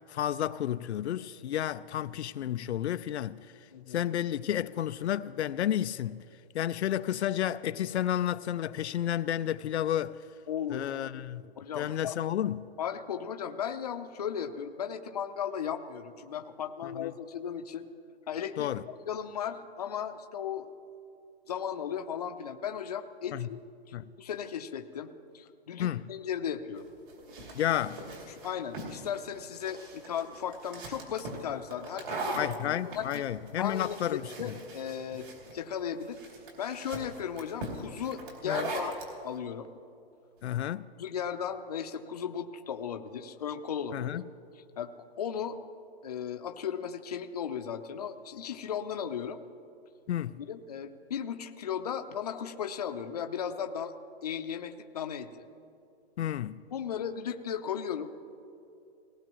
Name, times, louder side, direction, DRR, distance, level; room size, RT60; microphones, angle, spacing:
voice 1, 0.1-3.4 3.9-6.2 6.5-10.2 10.7-11.4 11.8-12.7 16.8-17.1 18.6-18.8 23.3-23.5 23.9-24.1 25.8-26.1 27.5-28.0 32.4-34.5 38.4-38.7 40.4-40.9 43.9-44.2 50.1-50.4 56.2-56.6, left 11 dB, 85° left, 0.5 m, -31 dB
voice 2, 3.7-4.0 10.5-10.9 11.6-12.2 12.8-17.9 18.3-20.7 21.5-23.6 24.2-26.9 28.3-33.2 33.6-35.3 35.5-36.2 36.6-39.0 39.2-39.7 41.0-44.3 44.8-45.6 46.0-49.4 50.4-53.9 54.2-55.3 56.7-58.1, left 8 dB, 40° left, 0.6 m, -36 dB
sound 1, 26.8-39.1, right 2 dB, 50° right, 2.9 m, -41 dB
18.5 x 18.0 x 3.0 m
hypercardioid pair, 170°, 32 cm